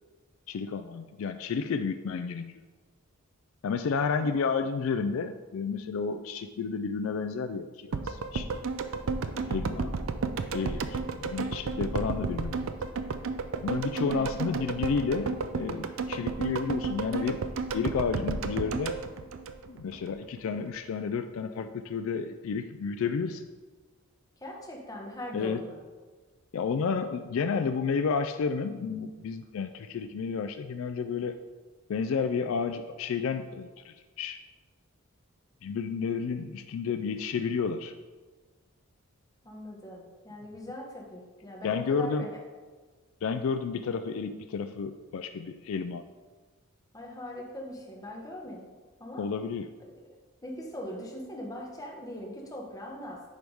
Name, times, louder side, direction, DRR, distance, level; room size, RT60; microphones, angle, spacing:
voice 1, 0.5-2.6 3.6-8.5 9.5-9.9 10.5-12.7 13.6-17.4 17.7-19.0 19.7-23.5 25.3-25.6 26.5-31.4 31.9-34.4 35.6-37.9 41.6-42.3 43.2-46.0 49.2-49.7, left 5 dB, 65° left, 8 dB, 0.3 m, -31 dB
sound 1, 7.9-20.1 20.4-20.5, right 4 dB, 65° right, 0.4 m, -32 dB
voice 2, 14.1-14.7 24.4-25.8 39.4-42.3 46.9-48.7 49.0-49.3 50.4-53.3, left 1 dB, 15° left, -1 dB, 1.1 m, -41 dB
10.0 x 3.5 x 4.8 m, 1.4 s
head